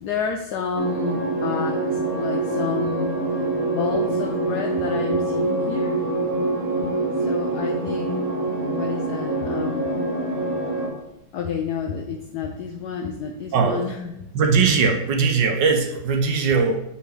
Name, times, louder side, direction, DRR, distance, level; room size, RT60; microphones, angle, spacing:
voice 1, 0.0-3.2 3.7-6.0 7.2-8.3 8.7-10.0 11.3-14.1, left 6 dB, 80° left, 3 dB, 0.9 m, -30 dB
sound 1, 0.7-10.9, right 2 dB, 25° right, 1.0 m, -25 dB
voice 2, 13.5-13.8 14.3-16.8, right 5 dB, 70° right, 4 dB, 1.2 m, -20 dB
6.5 x 4.5 x 3.4 m, 0.84 s
omnidirectional pair, 2.2 m